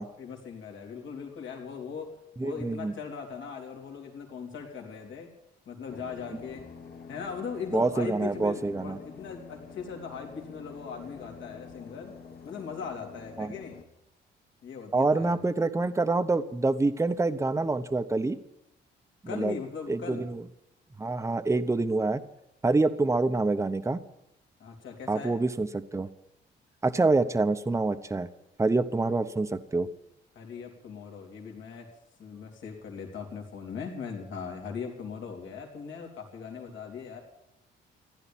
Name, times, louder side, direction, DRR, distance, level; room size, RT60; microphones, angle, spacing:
voice 1, 0.2-2.2 2.4-5.3 5.7-6.6 7.1-12.2 12.4-13.8 14.6-15.4 19.3-20.3 24.6-25.4 30.4-31.9 32.2-37.2, left 6 dB, 70° left, 1 dB, 3.5 m, -39 dB
voice 2, 2.4-2.9 7.7-9.0 13.4-13.5 14.9-18.4 19.3-19.5 19.9-20.4 21.0-22.2 22.6-24.0 25.1-26.1 26.8-28.3 28.6-29.9, right 3 dB, 15° right, 9 dB, 0.9 m, -26 dB
sound 1, 5.9-13.8, left 6 dB, 50° left, 1.7 m, -47 dB
15.5 x 10.5 x 8.9 m, 0.84 s
cardioid pair, 90°, 20 cm